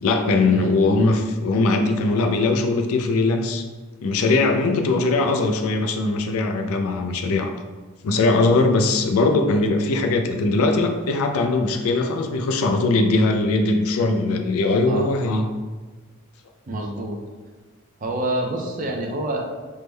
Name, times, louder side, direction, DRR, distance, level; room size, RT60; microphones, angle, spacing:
voice 1, 0.0-3.6 4.0-7.5 8.0-15.4, left 3 dB, 80° left, 5 dB, 0.3 m, -20 dB
voice 2, 16.7-17.2 18.0-19.6, right 1 dB, 35° right, 1 dB, 0.4 m, -27 dB
3.4 x 2.1 x 3.1 m, 1.3 s
head